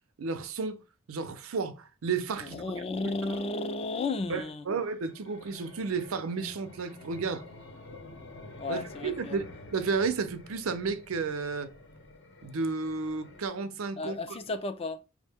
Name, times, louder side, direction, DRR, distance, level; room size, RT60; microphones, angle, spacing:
voice 1, 0.2-0.8 1.1-2.6 4.3-7.4 8.7-9.5 9.7-11.7 12.4-14.2, right 4 dB, 85° right, 0.5 m, -32 dB
voice 2, 2.4-4.7 8.6-9.4 14.0-15.0, left 3 dB, 30° left, 0.4 m, -33 dB
sound 1, 4.7-13.5, left 2 dB, 60° left, 0.8 m, -49 dB
4.9 x 2.1 x 3.4 m
head